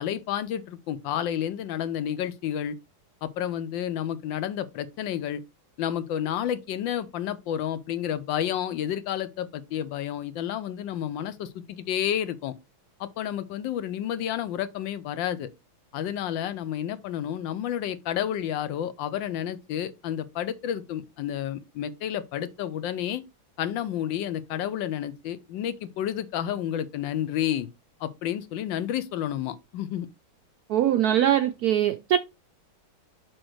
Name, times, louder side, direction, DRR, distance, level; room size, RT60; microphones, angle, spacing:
voice 1, 0.0-2.7 3.2-5.4 5.8-12.5 13.0-15.5 15.9-23.2 23.6-27.7 28.0-30.1, left 10 dB, 75° left, 1.3 m, -30 dB
voice 2, 30.7-32.2, right 11 dB, 75° right, 0.8 m, -22 dB
6.3 x 6.1 x 3.1 m
omnidirectional pair, 2.2 m